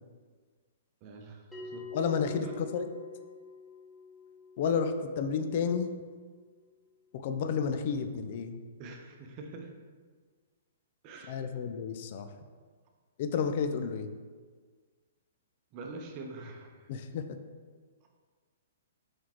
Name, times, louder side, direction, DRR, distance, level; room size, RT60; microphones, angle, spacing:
voice 1, 1.0-1.8 2.4-2.5 8.8-9.7 11.0-11.4 15.7-16.9, right 3 dB, 40° right, 2 dB, 0.7 m, -45 dB
Bell, 1.5-6.6, left 4 dB, ahead, 1.2 m, -48 dB
voice 2, 1.9-2.9 4.6-5.9 7.1-8.6 11.3-12.3 13.2-14.1 16.9-17.4, left 6 dB, 50° left, 8 dB, 0.3 m, -31 dB
4.6 x 3.8 x 3.0 m, 1.5 s
hypercardioid pair, 125°, 0 cm